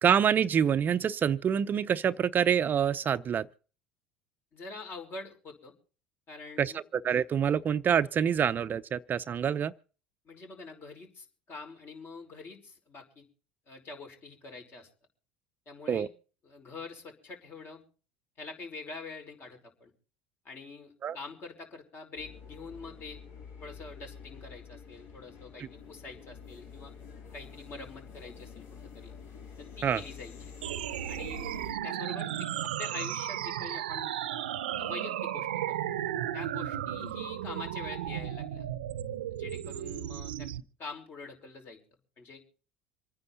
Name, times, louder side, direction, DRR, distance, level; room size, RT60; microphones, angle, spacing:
voice 1, 0.0-3.5 6.6-9.7 15.9-16.1 21.0-21.2 29.8-30.0, right 8 dB, 40° right, 0.6 m, -26 dB
voice 2, 4.5-5.7 6.3-6.8 10.3-13.3 13.7-14.9 15.7-16.1 16.4-17.8 18.4-19.9 20.5-23.2 23.6-26.9 27.3-29.1 29.6-30.5 31.1-31.5 31.8-32.5 32.8-34.1 34.8-35.8 36.3-38.7 39.3-40.5 40.8-41.8 42.2-42.4, left 3 dB, 45° left, 5.3 m, -45 dB
sound 1, 22.2-31.7, left 6 dB, 60° left, 4.0 m, -48 dB
sound 2, 30.6-40.6, right 11 dB, 85° right, 0.8 m, -35 dB
26.5 x 9.7 x 4.1 m
hypercardioid pair, 75°, 5 cm